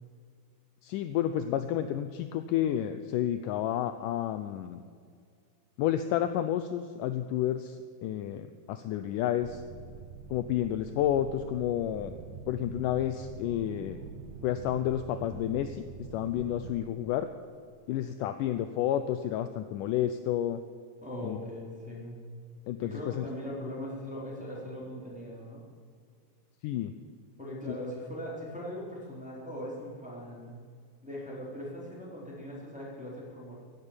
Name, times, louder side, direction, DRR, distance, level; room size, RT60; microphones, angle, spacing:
voice 1, 0.8-4.8 5.8-9.6 10.3-12.1 12.5-14.0 14.4-15.8 16.1-17.3 17.9-20.6 21.2-21.4 22.7-23.3 26.6-26.9, left 11 dB, 80° left, 9 dB, 2.0 m, -30 dB
sound 1, 9.4-16.8, right 6 dB, 75° right, 2.2 m, -45 dB
voice 2, 21.0-22.2 22.8-25.6 27.4-30.5 31.0-33.5, equal, ahead, -6 dB, 3.7 m, -40 dB
15.5 x 8.2 x 9.0 m, 2.1 s
omnidirectional pair, 4.1 m